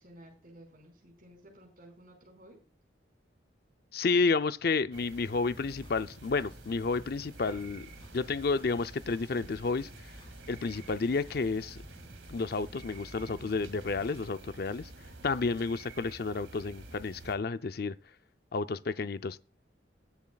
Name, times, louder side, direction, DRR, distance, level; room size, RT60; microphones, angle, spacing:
voice 1, 0.0-2.6, right 1 dB, 45° right, 5.0 m, -54 dB
voice 2, 3.9-7.9 8.1-9.9 10.5-11.8 12.3-14.9 15.2-18.0 18.5-19.4, left 4 dB, 50° left, 0.5 m, -31 dB
sound 1, 4.9-17.4, right 2 dB, 75° right, 2.2 m, -50 dB
sound 2, 5.5-14.3, equal, 25° left, 2.0 m, -53 dB
21.0 x 7.2 x 2.3 m
head